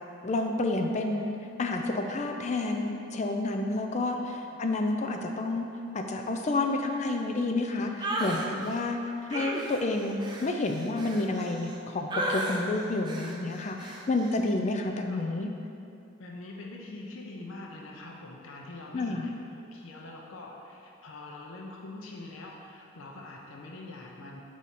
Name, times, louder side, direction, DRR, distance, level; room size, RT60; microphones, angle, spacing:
voice 1, 0.2-5.7 5.9-15.5 18.9-19.3, left 2 dB, 35° left, 4 dB, 0.4 m, -30 dB
voice 2, 4.0-4.6 15.1-15.2 16.2-19.3 19.7-24.4, left 2 dB, 90° left, -1 dB, 0.7 m, -44 dB
sound 1, 8.0-8.5 9.3-11.7 12.1-12.6 13.1-13.4 13.8-14.0, right 1 dB, 20° right, 0.5 m, -33 dB
4.8 x 4.1 x 5.7 m, 2.6 s
head